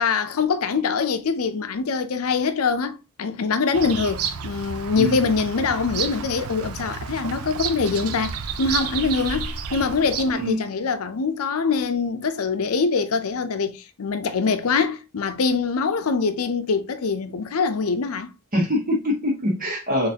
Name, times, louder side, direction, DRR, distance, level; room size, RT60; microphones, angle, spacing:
voice 1, 0.0-18.3, left 5 dB, 80° left, 0.5 m, -24 dB
Bird vocalization bird call bird song, 3.7-10.5, right 6 dB, 85° right, 0.5 m, -31 dB
voice 2, 18.5-20.1, left 1 dB, 40° right, 1.6 m, -23 dB
4.0 x 3.2 x 2.7 m
head